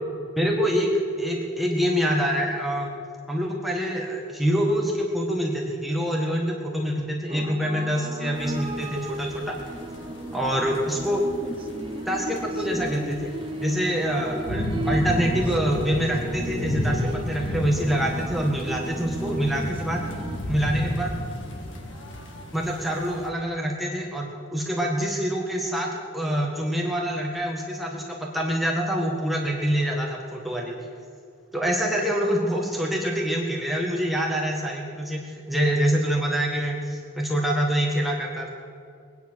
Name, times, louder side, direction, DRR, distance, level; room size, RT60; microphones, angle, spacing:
voice 1, 0.4-2.9 3.3-9.6 10.3-11.2 12.1-13.3 13.6-20.0 20.5-21.1 22.5-30.7 31.5-38.5, equal, ahead, -2 dB, 1.7 m, -26 dB
sound 1, 7.3-20.4, right 1 dB, 25° right, 0.6 m, -34 dB
sound 2, 8.4-23.3, left 1 dB, 65° left, 1.9 m, -33 dB
22.5 x 9.7 x 6.4 m, 2.4 s
head